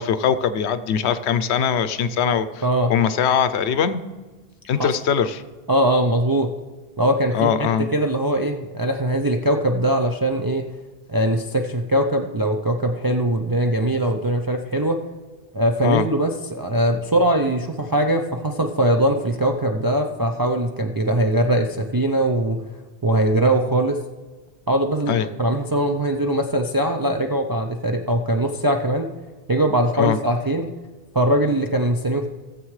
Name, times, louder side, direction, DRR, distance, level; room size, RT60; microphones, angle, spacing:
voice 1, 0.0-2.6 2.9-4.0 4.7-5.4 7.3-7.9 15.8-16.1 25.1-25.3 30.0-30.2, left 8 dB, 75° left, 13 dB, 0.9 m, -21 dB
voice 2, 2.6-2.9 4.8-4.9 5.7-6.5 7.0-7.5 7.9-10.6 11.1-15.0 15.5-22.6 23.0-24.0 24.7-29.1 29.5-30.7 31.1-32.3, right 1 dB, 35° right, 3 dB, 0.3 m, -21 dB
18.0 x 7.5 x 3.2 m, 1.3 s
omnidirectional pair, 1.1 m